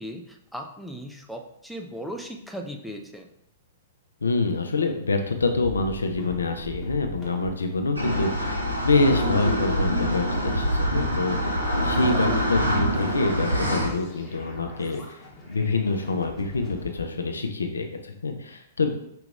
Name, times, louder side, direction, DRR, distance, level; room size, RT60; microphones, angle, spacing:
voice 1, 0.0-3.3 11.8-12.5, equal, ahead, 2 dB, 0.4 m, -38 dB
voice 2, 4.2-15.2 15.5-18.9, left 3 dB, 70° left, 5 dB, 0.6 m, -26 dB
sound 1, 5.4-17.0, left 2 dB, 15° left, 1.2 m, -44 dB
sound 2, 7.9-13.9, equal, 80° right, 0.9 m, -25 dB
5.2 x 2.9 x 3.5 m, 0.75 s
figure-of-eight pair, 110°, 0 cm